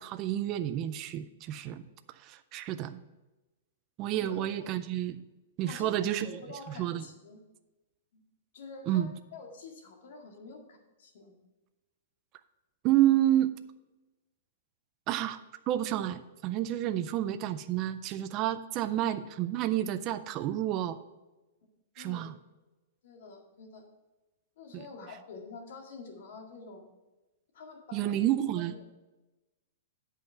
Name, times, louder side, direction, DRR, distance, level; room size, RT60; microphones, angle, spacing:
voice 1, 0.0-1.8 2.2-3.0 4.0-5.2 5.6-6.4 6.8-7.1 8.9-9.1 12.8-13.5 15.1-15.4 15.7-21.0 22.0-22.3 24.7-24.8 27.9-28.7, right 12 dB, 25° right, 10 dB, 0.4 m, -29 dB
voice 2, 4.2-4.7 5.7-7.4 8.1-8.2 8.5-11.4 22.0-22.3 23.0-23.8 24.6-26.8 27.5-28.3 28.7-29.0, left 4 dB, 60° left, 2 dB, 1.9 m, -47 dB
9.0 x 5.5 x 5.7 m, 1.1 s
hypercardioid pair, 165°, 0 cm